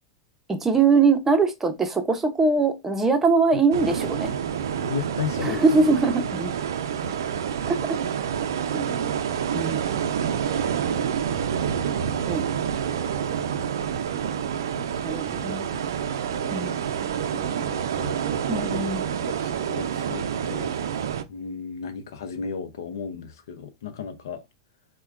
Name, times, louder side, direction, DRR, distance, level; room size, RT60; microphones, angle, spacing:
voice 1, 0.5-4.3 5.4-6.5 7.7-7.8 8.7-9.2 9.5-9.9 12.3-12.4 15.0-15.9 16.5-16.8 18.5-19.1, right 4 dB, 15° right, 0.7 m, -22 dB
sound 1, 3.7-21.2, right 8 dB, 80° right, 0.4 m, -28 dB
voice 2, 4.8-5.6 14.8-14.9 15.3-15.8 16.3-16.9 17.3-18.2 19.3-20.7 21.3-24.4, left 6 dB, 80° left, 0.6 m, -35 dB
4.2 x 2.2 x 2.4 m
hypercardioid pair, 110°, 2 cm